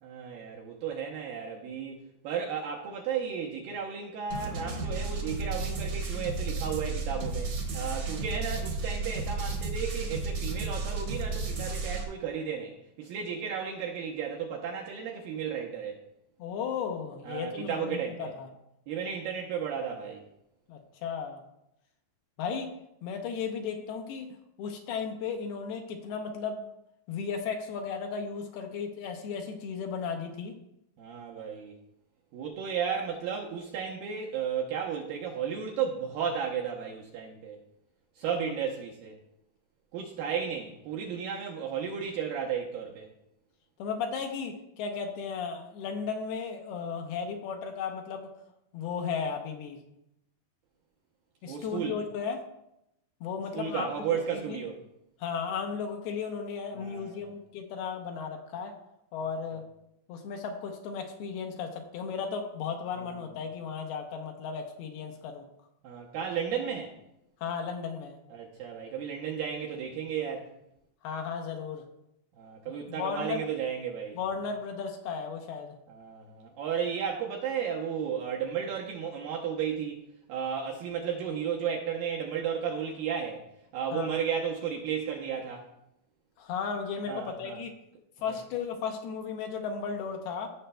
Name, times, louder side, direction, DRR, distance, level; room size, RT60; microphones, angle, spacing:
voice 1, 0.0-2.0 2.2-16.0 17.2-18.3 18.9-20.2 31.0-31.7 32.3-37.6 38.2-39.1 39.9-43.1 51.5-52.0 53.5-54.8 56.7-57.3 65.8-66.9 68.3-70.5 72.4-74.2 75.9-80.0 80.3-83.4 83.7-85.7 87.1-87.6 88.3-88.4, right 7 dB, 75° right, -2 dB, 2.2 m, -34 dB
sound 1, 4.3-12.0, right 3 dB, 60° right, 1.7 m, -33 dB
voice 2, 16.4-18.5 20.7-21.4 22.4-22.7 23.0-24.3 24.6-26.6 27.1-30.6 43.8-48.3 48.7-49.8 51.4-52.4 53.2-54.6 55.2-58.7 59.1-59.6 60.1-65.4 67.4-68.2 71.0-71.8 72.9-73.5 74.2-75.7 83.9-84.1 86.4-87.7 88.2-90.5, left 6 dB, 75° left, 3 dB, 2.7 m, -35 dB
16.5 x 6.4 x 2.2 m, 0.82 s
omnidirectional pair, 4.9 m